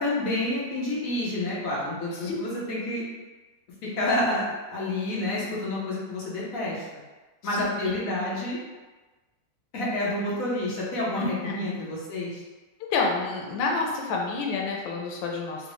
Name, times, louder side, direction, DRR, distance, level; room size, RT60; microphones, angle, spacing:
voice 1, 0.0-3.0 3.8-6.8 7.4-8.6 9.7-12.4, left 1 dB, 55° left, -6 dB, 1.1 m, -29 dB
voice 2, 11.2-11.5 12.9-15.7, left 4 dB, 90° left, 0 dB, 1.4 m, -28 dB
4.0 x 2.1 x 3.0 m, 1.2 s
omnidirectional pair, 2.0 m